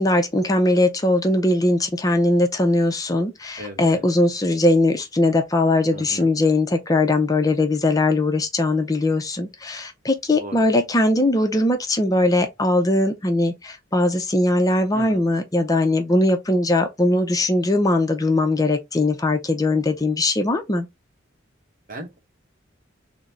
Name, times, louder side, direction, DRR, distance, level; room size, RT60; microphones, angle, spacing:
voice 1, 0.0-20.9, left 2 dB, 20° left, 0.5 m, -20 dB
voice 2, 3.6-4.0 5.9-6.3 10.3-10.7 14.9-15.2 21.9-22.2, equal, 45° right, 1.0 m, -37 dB
3.8 x 2.1 x 4.3 m
head